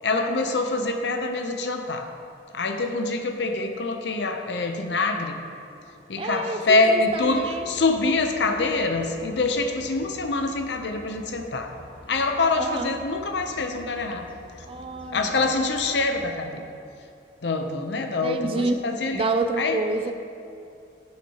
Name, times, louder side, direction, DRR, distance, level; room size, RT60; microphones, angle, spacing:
voice 1, 0.0-2.1 2.5-5.4 6.1-11.7 12.1-14.2 14.5-14.6 15.1-16.6 17.4-19.3 19.6-19.8, left 3 dB, 70° left, 5 dB, 0.7 m, -25 dB
voice 2, 6.2-7.7 12.6-12.9 14.7-15.4 18.2-20.1, right 2 dB, 30° right, 7 dB, 0.3 m, -28 dB
sound 1, 7.1-16.2, left 1 dB, 25° left, 0.8 m, -48 dB
10.0 x 7.3 x 3.0 m, 2.6 s
head